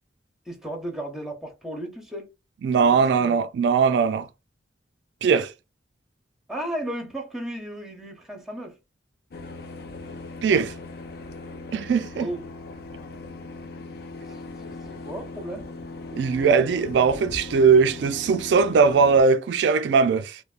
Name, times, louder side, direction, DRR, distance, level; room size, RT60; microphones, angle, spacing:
voice 1, 0.5-2.3 2.8-3.4 6.5-8.8 12.2-12.4 14.2-15.7, right 1 dB, ahead, 0.8 m, -35 dB
voice 2, 2.6-4.3 5.2-5.5 10.4-10.7 11.7-12.3 16.1-20.4, right 5 dB, 80° right, 0.3 m, -20 dB
sound 1, 9.3-19.2, left 2 dB, 60° left, 0.5 m, -39 dB
3.2 x 2.1 x 2.4 m
head